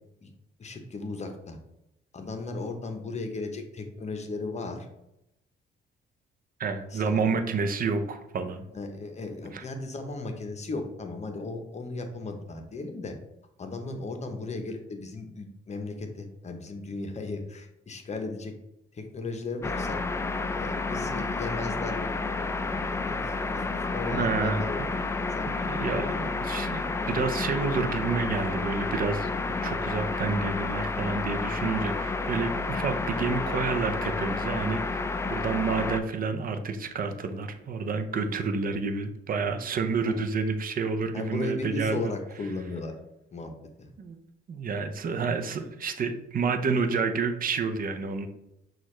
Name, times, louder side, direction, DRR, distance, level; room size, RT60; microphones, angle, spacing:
voice 1, 0.6-1.6 2.1-4.9 6.9-7.3 8.7-13.1 13.6-18.5 18.9-20.0 20.5-22.8 23.1-24.9 25.3-26.2 38.1-38.3 40.0-40.2 41.1-42.9 43.3-43.5 43.8-43.9, left 3 dB, 35° left, 5 dB, 0.7 m, -36 dB
voice 2, 6.6-8.6 9.5-9.6 24.1-24.9 25.6-29.3 29.6-35.0 35.3-42.1 44.0-44.2 44.5-48.3, right 4 dB, 45° right, 8 dB, 0.6 m, -29 dB
sound 1, 19.6-36.0, left 3 dB, 15° left, 0.3 m, -30 dB
6.1 x 2.4 x 3.1 m, 0.85 s
cardioid pair, 90°, 20 cm